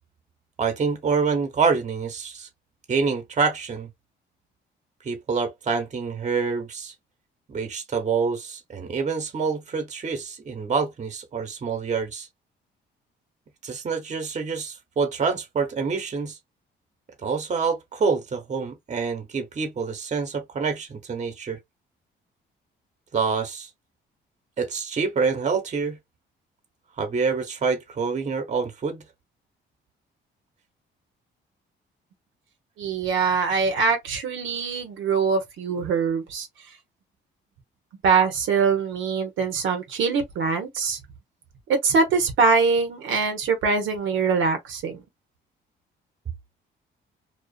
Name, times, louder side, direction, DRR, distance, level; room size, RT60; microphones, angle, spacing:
voice 1, 0.6-2.5 2.9-3.9 5.0-6.9 7.5-12.3 13.6-16.4 17.2-21.6 23.1-23.7 24.6-26.0 27.0-29.0, right 5 dB, 35° right, 1.0 m, -26 dB
voice 2, 32.8-36.5 38.0-41.0 41.7-45.0, right 5 dB, 80° right, 0.8 m, -23 dB
2.5 x 2.3 x 2.3 m
cardioid pair, 90°, 20 cm